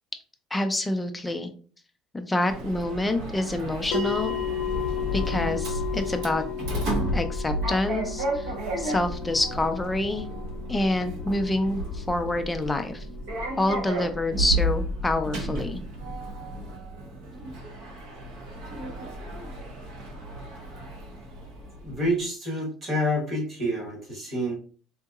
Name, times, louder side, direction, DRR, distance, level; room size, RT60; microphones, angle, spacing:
voice 1, 0.5-1.5 2.1-4.3 5.1-6.4 7.1-8.5 8.8-10.2 10.7-13.1 13.6-15.8, left 1 dB, 10° left, 6 dB, 0.3 m, -27 dB
Sliding door, 2.5-22.1, right 1 dB, 60° right, 0.7 m, -32 dB
sound 1, 3.9-14.5, left 8 dB, 65° left, 0.6 m, -35 dB
voice 2, 21.8-24.5, equal, 30° right, -2 dB, 1.2 m, -28 dB
3.7 x 2.7 x 2.3 m, 0.43 s
cardioid pair, 175°, 0 cm